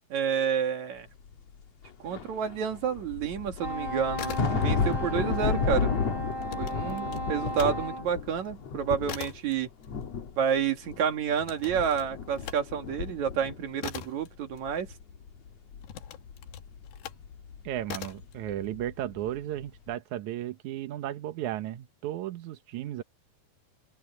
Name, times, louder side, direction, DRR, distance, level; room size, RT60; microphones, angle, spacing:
voice 1, 0.1-1.1 2.0-6.0 6.6-9.7 10.4-14.9, right 8 dB, 50° right, 2.9 m, -29 dB
sound 1, 1.3-1.4 1.8-9.5 9.8-11.4 11.6-14.2 14.5-19.4 19.6-19.9, left 6 dB, 50° left, 2.5 m, -33 dB
Wind instrument woodwind instrument, 3.6-8.1, right 1 dB, 5° right, 5.2 m, -36 dB
sound 2, 4.1-5.0 5.3-7.8 8.2-15.2 15.8-17.3 17.8-18.3, left 11 dB, 75° left, 3.4 m, -43 dB
voice 2, 17.6-23.0, right 12 dB, 75° right, 1.7 m, -34 dB
open air
omnidirectional pair, 4.8 m